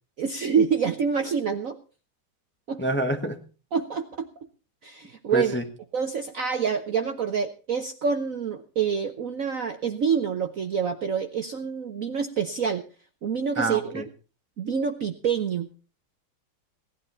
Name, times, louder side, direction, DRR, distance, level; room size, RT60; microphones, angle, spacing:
voice 1, 0.2-1.8 2.7-2.8 3.7-4.3 4.8-5.5 5.9-12.8 13.2-14.0 14.6-15.7, right 6 dB, 55° right, 1.0 m, -27 dB
voice 2, 2.8-3.4 5.3-5.6 13.6-14.0, right 1 dB, 5° left, 1.0 m, -26 dB
18.0 x 11.5 x 4.3 m
omnidirectional pair, 2.3 m